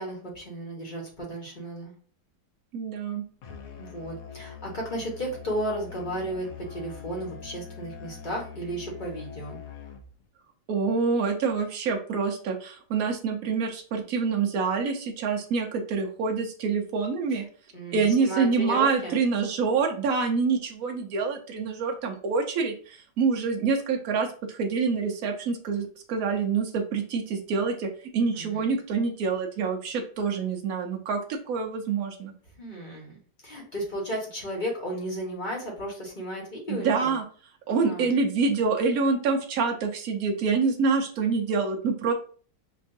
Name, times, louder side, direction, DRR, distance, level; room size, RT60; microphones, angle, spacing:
voice 1, 0.0-1.9 3.8-9.6 17.3-17.4 17.7-19.2 28.4-28.7 32.6-33.2 33.4-37.1 37.8-38.1, right 1 dB, 30° left, -2 dB, 1.1 m, -34 dB
voice 2, 2.7-3.2 10.7-17.5 17.9-32.3 36.7-37.2 37.7-42.1, right 5 dB, 60° right, 3 dB, 1.1 m, -26 dB
Musical instrument, 3.4-10.2, left 7 dB, 65° left, 1.0 m, -43 dB
6.2 x 2.5 x 2.6 m, 0.43 s
omnidirectional pair, 1.9 m